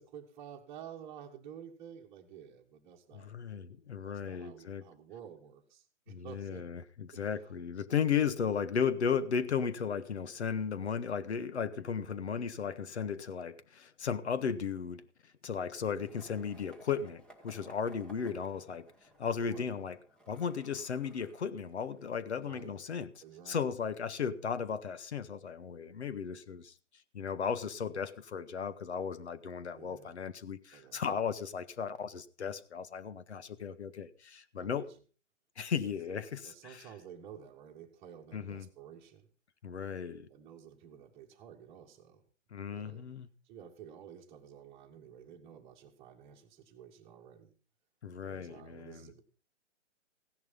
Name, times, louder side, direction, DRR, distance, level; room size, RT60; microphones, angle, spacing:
voice 1, 0.0-3.3 4.0-6.7 7.1-7.5 19.4-19.8 22.3-22.8 23.2-23.8 29.7-30.2 30.7-31.0 34.6-34.9 35.8-36.0 36.4-39.3 40.3-42.2 42.7-43.0 43.4-47.5 48.2-49.2, right 8 dB, 15° right, -2 dB, 1.5 m, -51 dB
voice 2, 3.1-4.8 6.1-15.1 15.4-18.9 19.2-20.0 20.3-23.1 23.5-26.7 27.1-34.9 35.6-36.9 38.3-38.7 39.6-40.3 42.5-43.3 48.0-49.1, left 7 dB, 60° left, 14 dB, 1.6 m, -35 dB
Skateboard, 16.0-23.9, right 1 dB, ahead, 1.1 m, -60 dB
16.0 x 11.0 x 5.3 m, 0.37 s
hypercardioid pair, 145°, 37 cm